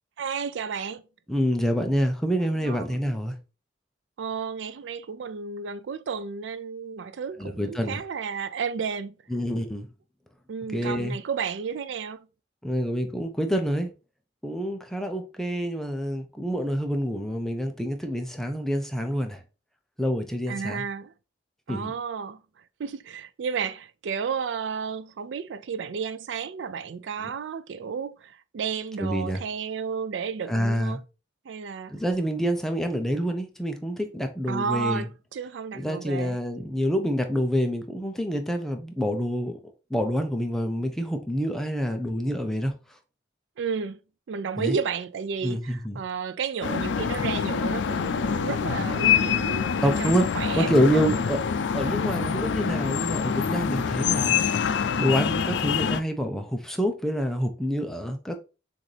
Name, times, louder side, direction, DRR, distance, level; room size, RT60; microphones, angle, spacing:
voice 1, 0.2-1.0 2.6-2.9 4.2-9.1 10.5-12.3 20.5-21.1 21.7-22.4 22.8-31.0 31.5-31.9 34.5-36.4 43.6-44.0 44.3-49.7 50.0-51.2, right 6 dB, 80° right, 0.4 m, -32 dB
voice 2, 1.3-3.3 7.4-8.0 9.3-9.9 10.7-11.2 12.6-13.9 14.4-19.4 20.0-20.8 21.7-21.9 27.2-27.3 29.0-29.4 30.5-31.0 31.9-35.1 35.7-39.6 39.9-42.7 44.6-44.8 45.4-46.0 49.8-50.3 50.6-51.4 51.7-54.4 55.0-58.3, equal, ahead, 0.6 m, -27 dB
sound 1, 46.6-56.0, left 7 dB, 80° left, 0.4 m, -25 dB
6.2 x 2.6 x 3.3 m
head